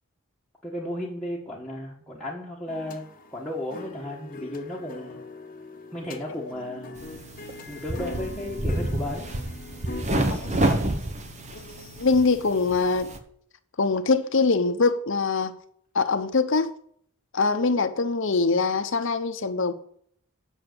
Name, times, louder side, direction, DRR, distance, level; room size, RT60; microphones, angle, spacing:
voice 1, 0.6-3.0 3.3-5.2 5.9-7.2 7.7-9.3, left 1 dB, 5° left, 1.5 m, -34 dB
sound 1, 2.7-10.0, left 2 dB, 40° left, 1.0 m, -42 dB
sound 2, 6.9-13.2, right 1 dB, 35° right, 1.0 m, -29 dB
voice 2, 10.3-10.7 11.5-13.1 13.8-15.6 15.9-16.7 17.3-19.7, left 4 dB, 60° left, 0.8 m, -23 dB
8.9 x 6.4 x 6.7 m
head